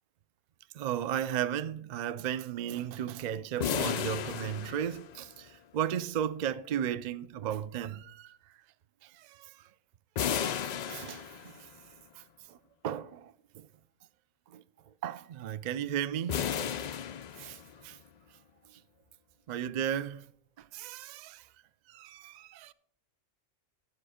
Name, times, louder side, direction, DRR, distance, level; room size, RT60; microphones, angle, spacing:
voice 1, 0.7-8.4 9.0-9.5 10.9-11.5 12.5-12.6 12.8-13.7 14.5-14.6 15.0-16.5 17.4-18.0 19.5-20.2 20.7-21.4 21.9-22.7, right 10 dB, 70° right, 0.4 m, -35 dB
sound 1, 3.6-5.5 10.2-11.8 16.3-17.9, left 9 dB, 85° left, 0.3 m, -34 dB
10.0 x 7.9 x 4.9 m
omnidirectional pair, 1.3 m